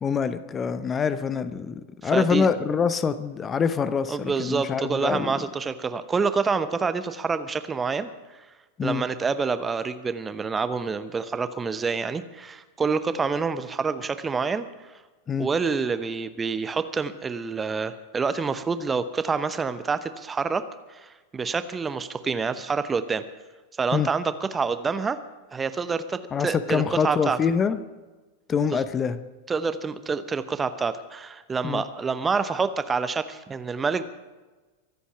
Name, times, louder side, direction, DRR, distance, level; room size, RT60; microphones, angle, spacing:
voice 1, 0.0-5.3 8.8-9.0 15.3-15.5 23.9-24.1 26.3-27.8 28.5-29.2 31.6-31.8, left 6 dB, 20° left, 13 dB, 0.8 m, -25 dB
voice 2, 2.0-2.5 4.1-8.4 8.8-14.7 15.4-20.6 20.9-23.2 23.8-25.2 25.5-27.4 28.7-28.8 29.5-34.0, right 5 dB, 15° right, 12 dB, 0.9 m, -27 dB
24.0 x 8.3 x 5.9 m, 1.2 s
figure-of-eight pair, 90°, 0 cm